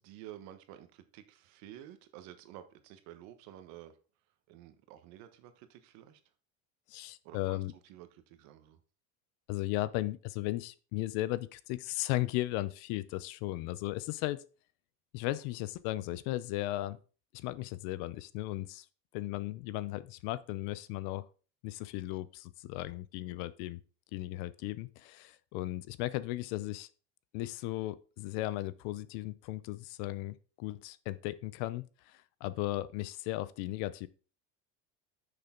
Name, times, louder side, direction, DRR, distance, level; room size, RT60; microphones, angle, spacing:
voice 1, 0.0-3.9 4.5-6.2 7.2-8.8, right 12 dB, 55° right, 1.3 m, -51 dB
voice 2, 6.9-7.7 9.5-14.4 15.1-17.0 17.3-18.8 19.1-21.3 21.6-23.8 24.1-26.9 27.3-34.1, left 17 dB, 55° left, 0.6 m, -36 dB
10.5 x 6.7 x 3.8 m
cardioid pair, 175°, 33 cm